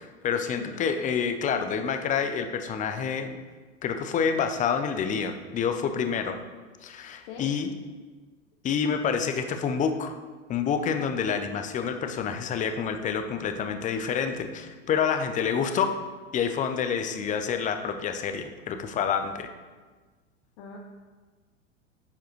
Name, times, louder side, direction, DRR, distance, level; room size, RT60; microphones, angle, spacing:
voice 1, 0.0-3.4 3.8-6.4 6.8-7.7 8.6-10.2 10.5-16.0 16.3-19.5, left 6 dB, 20° left, 8 dB, 0.5 m, -28 dB
voice 2, 0.5-0.8 7.3-7.5 20.6-20.8, left 6 dB, 50° left, 0 dB, 0.9 m, -42 dB
10.5 x 4.6 x 3.1 m, 1.4 s
hypercardioid pair, 95°, 39 cm